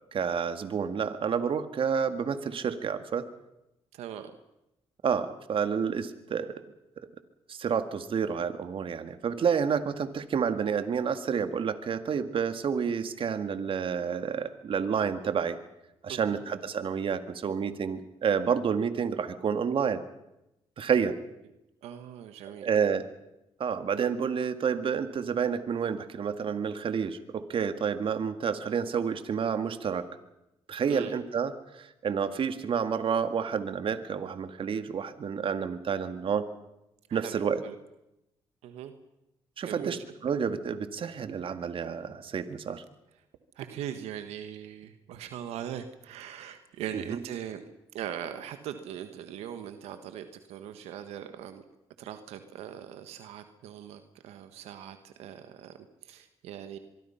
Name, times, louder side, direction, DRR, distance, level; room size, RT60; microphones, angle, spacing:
voice 1, 0.0-3.3 5.0-6.6 7.0-7.1 7.5-15.6 16.0-20.0 20.8-21.1 22.6-23.0 23.6-30.1 30.7-36.5 37.1-37.6 39.6-42.8 47.1-47.2, right 6 dB, 60° right, 10 dB, 2.0 m, -29 dB
voice 2, 3.9-4.3 16.1-16.4 21.8-22.7 30.9-31.1 37.1-37.4 37.6-37.7 38.6-38.9 39.6-40.0 43.5-47.6 47.9-51.6 52.0-56.8, right 10 dB, 90° right, 9 dB, 1.5 m, -40 dB
23.5 x 23.5 x 5.8 m, 0.88 s
cardioid pair, 75°, 10 cm